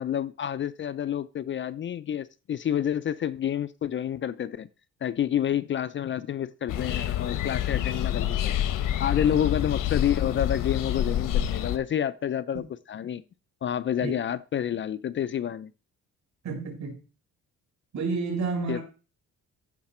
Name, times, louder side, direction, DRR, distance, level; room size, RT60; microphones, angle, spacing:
voice 1, 0.0-4.7 5.0-8.6 9.0-12.6 12.9-13.2 13.6-15.7 18.7-18.8, left 9 dB, 40° left, 0.4 m, -29 dB
sound 1, 6.7-11.8, left 11 dB, 80° left, 1.1 m, -27 dB
voice 2, 16.4-17.0 17.9-18.8, right 4 dB, 60° right, 5.1 m, -30 dB
14.5 x 5.7 x 4.3 m
cardioid pair, 150°, 32 cm